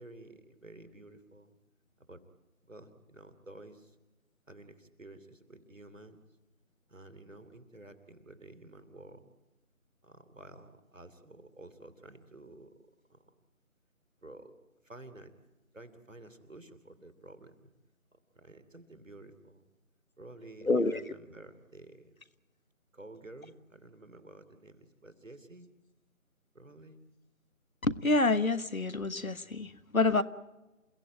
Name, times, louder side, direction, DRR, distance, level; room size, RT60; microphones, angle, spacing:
voice 1, 0.0-1.5 2.1-2.2 2.7-4.0 4.5-6.2 6.9-9.3 10.0-12.7 13.1-13.2 14.2-14.6 14.8-15.3 15.7-17.7 18.3-19.7 20.2-22.2 22.9-25.7 26.5-27.0, right 2 dB, 65° right, 11 dB, 3.0 m, -51 dB
voice 2, 20.6-21.0 27.8-30.2, left 3 dB, 75° left, 14 dB, 1.3 m, -27 dB
28.5 x 17.0 x 9.0 m, 1.0 s
figure-of-eight pair, 165°, 42 cm